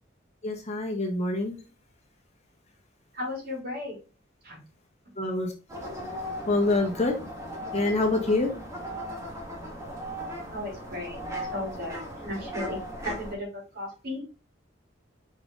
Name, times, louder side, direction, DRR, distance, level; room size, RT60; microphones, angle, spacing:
voice 1, 0.4-1.6 5.2-5.5 6.5-7.2 7.7-8.5, left 2 dB, 35° left, 1.4 m, -25 dB
voice 2, 3.1-4.0 4.4-4.6 10.5-11.2 11.5-14.2, left 1 dB, 55° right, 3.5 m, -35 dB
sound 1, 5.7-13.4, equal, 15° right, 1.9 m, -37 dB
6.1 x 4.9 x 3.9 m
head